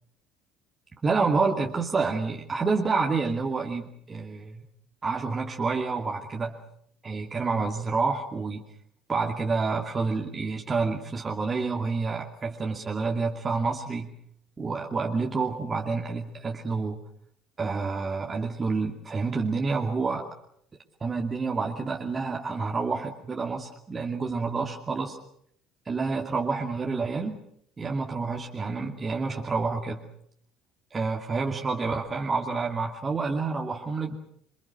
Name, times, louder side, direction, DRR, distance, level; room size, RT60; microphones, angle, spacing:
voice 1, 1.0-4.6 5.0-6.6 7.0-8.7 9.1-14.1 14.6-17.0 17.6-20.3 21.0-25.2 25.9-27.4 27.8-30.0 30.9-34.1, right 4 dB, 25° right, 0 dB, 2.5 m, -28 dB
28.0 x 24.0 x 6.4 m, 0.68 s
figure-of-eight pair, 60°, 0 cm